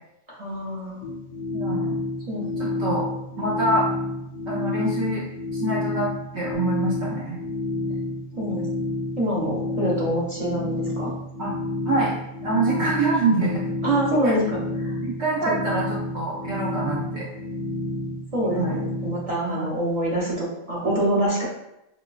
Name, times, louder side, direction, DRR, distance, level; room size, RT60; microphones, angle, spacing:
voice 1, 0.3-1.0 2.3-2.5 8.4-8.6 9.2-11.1 13.8-14.5 14.8-14.9 15.5-15.6 18.3-21.4, right 1 dB, 35° right, -6 dB, 0.6 m, -25 dB
sound 1, 1.0-19.2, left 2 dB, 60° left, 0.6 m, -30 dB
voice 2, 1.5-2.0 2.6-3.1 3.4-3.9 4.5-5.2 5.5-6.1 6.3-7.4 11.4-11.5 11.9-12.1 12.4-13.6 14.2-14.3 15.0-17.3 18.5-18.8 19.4-19.7, right 2 dB, 65° right, -5 dB, 0.9 m, -25 dB
3.8 x 2.2 x 2.4 m, 0.85 s
omnidirectional pair, 1.3 m